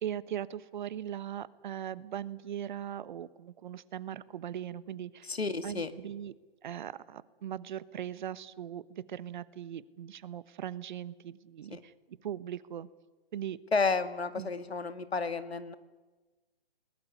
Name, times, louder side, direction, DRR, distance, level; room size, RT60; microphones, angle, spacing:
voice 1, 0.0-5.3 5.6-6.3 6.6-11.9 12.2-12.9 13.3-13.6 14.4-14.5, right 10 dB, 50° right, 18 dB, 1.2 m, -39 dB
voice 2, 5.3-5.9 11.7-11.8 13.7-15.7, left 4 dB, 90° left, 11 dB, 2.2 m, -31 dB
21.0 x 20.0 x 9.8 m, 1.2 s
hypercardioid pair, 140°, 31 cm